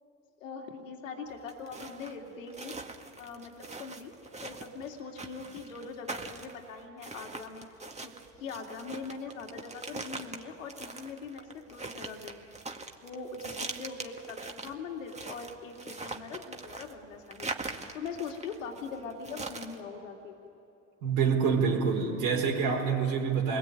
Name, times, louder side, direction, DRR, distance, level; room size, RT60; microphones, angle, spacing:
voice 1, 0.4-2.9 3.2-4.1 4.4-7.7 8.0-12.5 13.0-20.5, left 4 dB, 90° left, 2 dB, 2.6 m, -42 dB
sound 1, 1.3-19.8, right 3 dB, 20° right, 2.0 m, -42 dB
voice 2, 21.0-23.6, right 6 dB, 65° right, -2 dB, 4.0 m, -27 dB
28.0 x 21.0 x 9.2 m, 2.8 s
hypercardioid pair, 80°, 37 cm